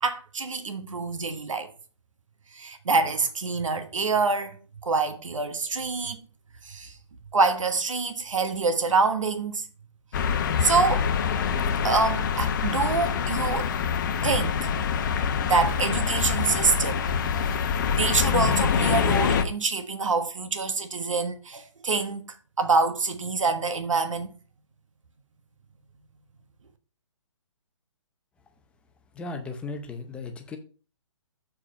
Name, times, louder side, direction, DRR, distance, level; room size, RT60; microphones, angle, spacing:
voice 1, 0.0-1.7 2.5-6.2 6.6-6.9 7.3-9.7 10.6-11.1 11.8-13.7 14.2-14.8 15.4-17.1 17.9-24.3, right 4 dB, 90° right, 1.3 m, -26 dB
sound 1, 10.1-19.4, left 6 dB, 40° left, 0.9 m, -25 dB
voice 2, 29.1-30.6, left 3 dB, 5° left, 0.7 m, -36 dB
7.3 x 4.8 x 5.2 m
hypercardioid pair, 155°, 16 cm